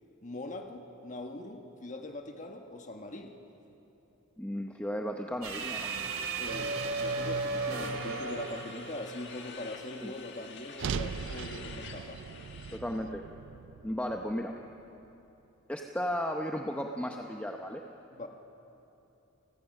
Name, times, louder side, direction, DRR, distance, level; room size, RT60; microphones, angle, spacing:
voice 1, 0.2-3.3 6.4-12.2 18.1-18.3, left 2 dB, 35° left, 4 dB, 1.3 m, -42 dB
voice 2, 4.4-5.9 10.0-10.1 12.7-13.2 13.8-14.5 15.7-17.8, equal, 5° left, 2 dB, 0.8 m, -34 dB
sound 1, 5.4-9.8, right 3 dB, 90° right, 2.5 m, -35 dB
sound 2, 7.7-12.8, left 6 dB, 60° left, 1.8 m, -49 dB
sound 3, 10.8-15.1, right 6 dB, 65° right, 0.4 m, -39 dB
29.0 x 16.5 x 6.6 m, 2.9 s
head